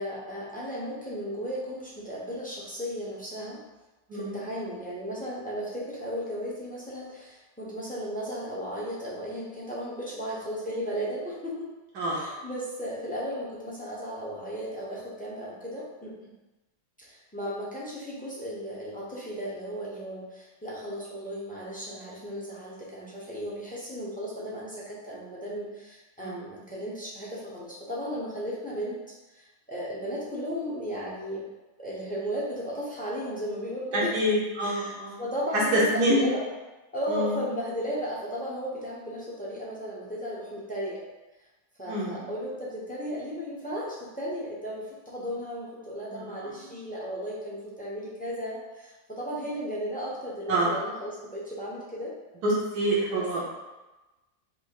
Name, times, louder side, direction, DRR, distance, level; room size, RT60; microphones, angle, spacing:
voice 1, 0.0-3.6 4.1-11.7 12.1-16.1 17.0-29.0 29.3-31.5 31.8-34.1 34.6-36.4 36.9-41.0 41.8-52.1 53.1-53.4, equal, 5° left, -7 dB, 0.7 m, -35 dB
voice 2, 26.2-26.5 33.9-35.2 35.7-36.2 37.1-37.4 41.9-42.3 46.1-46.7 50.5-50.7 52.4-53.4, right 1 dB, 70° right, -6 dB, 1.5 m, -27 dB
5.4 x 2.1 x 4.7 m, 1.1 s
omnidirectional pair, 1.7 m